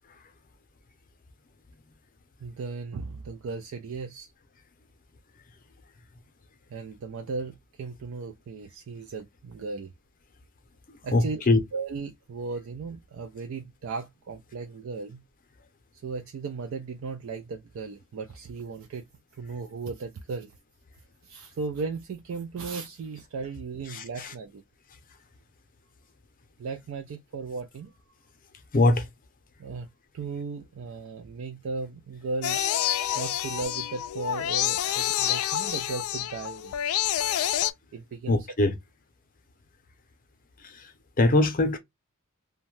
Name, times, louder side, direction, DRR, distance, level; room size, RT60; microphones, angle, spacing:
voice 1, 2.4-4.3 6.7-9.9 11.0-11.4 11.7-15.2 16.0-19.0 19.4-20.5 21.2-24.6 26.6-27.9 29.6-29.9 30.1-32.6 33.1-36.7 37.9-38.4, right 4 dB, 70° right, 0.3 m, -36 dB
voice 2, 11.1-11.6 23.8-24.3 28.7-29.1 38.3-38.8 40.6-40.9 41.2-41.8, left 2 dB, 40° left, 0.6 m, -22 dB
sound 1, 32.4-37.7, left 11 dB, 80° left, 0.3 m, -28 dB
2.6 x 2.2 x 3.1 m
head